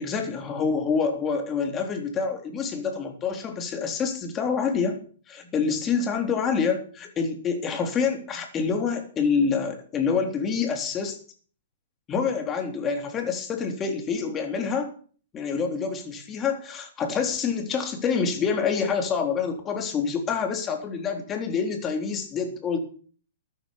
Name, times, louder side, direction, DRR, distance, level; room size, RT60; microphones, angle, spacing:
voice 1, 0.0-5.0 5.3-11.2 12.1-14.9 15.3-22.8, left 5 dB, 20° left, 4 dB, 3.7 m, -27 dB
13.5 x 9.8 x 7.2 m, 0.43 s
hypercardioid pair, 135°, 0 cm